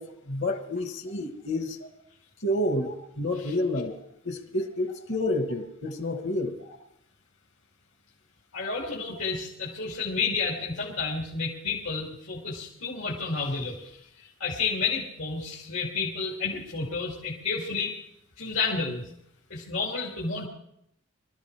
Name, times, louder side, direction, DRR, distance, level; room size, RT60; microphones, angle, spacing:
voice 1, 0.0-1.8 2.4-4.0 4.2-6.5, left 1 dB, 65° left, 6 dB, 1.3 m, -29 dB
voice 2, 8.5-17.9 18.4-19.1 19.5-20.5, left 4 dB, 90° left, -4 dB, 2.8 m, -31 dB
24.5 x 13.5 x 3.4 m, 0.76 s
head